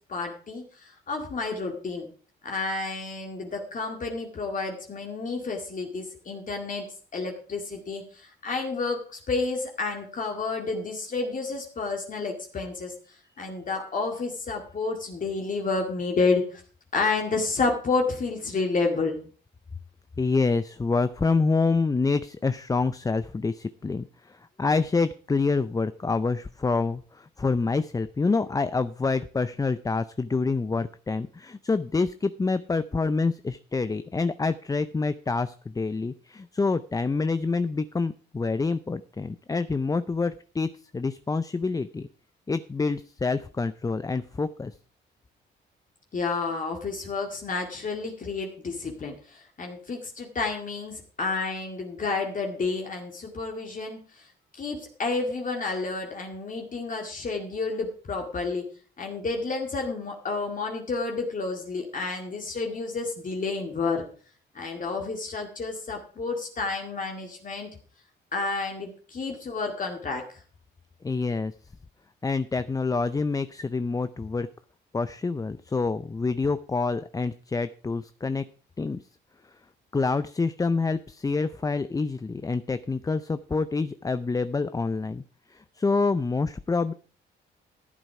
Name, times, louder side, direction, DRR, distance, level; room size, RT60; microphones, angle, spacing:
voice 1, 0.1-2.1 2.4-12.9 13.4-16.6 16.9-19.2 46.1-54.2 54.6-58.7 59.0-64.0 64.6-67.7 68.3-70.2, left 3 dB, 40° left, 2 dB, 2.1 m, -30 dB
voice 2, 20.2-42.1 42.5-44.8 71.0-71.5 72.2-74.5 74.9-78.4 78.8-79.0 79.9-85.2 85.5-86.9, left 4 dB, 20° left, 13 dB, 0.5 m, -27 dB
13.5 x 8.0 x 4.8 m, 0.41 s
cardioid pair, 90°, 20 cm